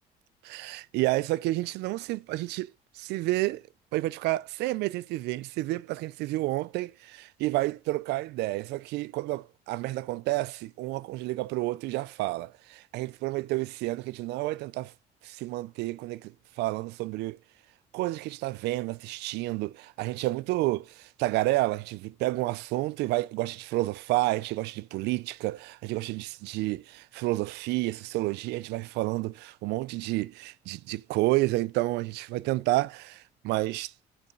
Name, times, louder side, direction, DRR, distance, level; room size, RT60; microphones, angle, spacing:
voice 1, 0.5-3.7 3.9-14.9 15.2-17.4 17.9-33.9, right 19 dB, 85° right, 0.4 m, -30 dB
8.6 x 6.9 x 4.0 m
cardioid pair, 110°, 17 cm